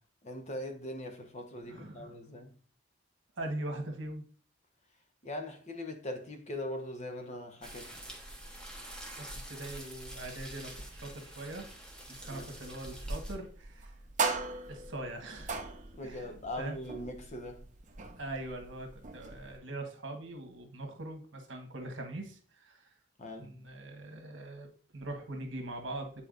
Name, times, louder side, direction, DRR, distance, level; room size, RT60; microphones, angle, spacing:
voice 1, 0.2-2.5 5.2-7.9 12.3-12.5 15.9-17.6 23.2-23.5, left 1 dB, 40° left, 1.0 m, -41 dB
voice 2, 1.6-2.1 3.4-4.2 9.2-11.7 12.1-13.9 14.7-15.6 16.0-16.8 18.0-22.9 23.4-26.3, right 2 dB, 70° right, 1.3 m, -42 dB
sound 1, 7.6-13.3, right 1 dB, 5° left, 1.1 m, -45 dB
sound 2, 12.2-19.6, right 4 dB, 40° right, 0.8 m, -40 dB
8.9 x 4.2 x 2.5 m
head